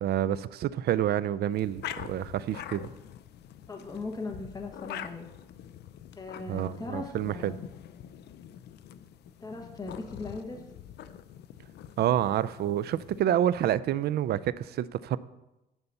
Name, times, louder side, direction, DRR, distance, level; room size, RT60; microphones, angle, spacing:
voice 1, 0.0-2.8 6.5-7.5 12.0-15.2, right 11 dB, 70° right, 0.4 m, -28 dB
sound 1, 1.5-13.2, left 10 dB, 75° left, 0.5 m, -45 dB
voice 2, 3.7-5.3 6.1-7.6 9.4-10.6, left 3 dB, 20° left, 1.2 m, -39 dB
10.5 x 4.1 x 6.8 m
cardioid pair, 100°, 17 cm